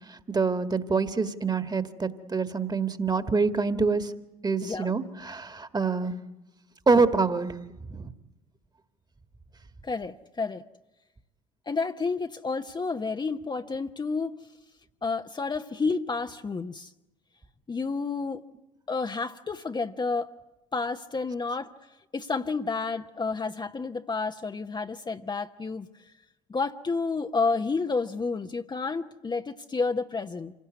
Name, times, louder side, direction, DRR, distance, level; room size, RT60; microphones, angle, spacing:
voice 1, 0.1-4.1 4.4-6.2 6.9-7.5 7.9-8.1, right 4 dB, 20° right, 10 dB, 1.9 m, -26 dB
voice 2, 4.6-4.9 9.8-10.6 11.7-14.4 15.0-16.9 17.7-18.4 18.9-20.3 20.7-21.7 22.1-25.9 26.5-30.5, left 4 dB, 25° left, 6 dB, 1.0 m, -30 dB
26.5 x 17.5 x 9.4 m, 1.0 s
hypercardioid pair, 60°, 18 cm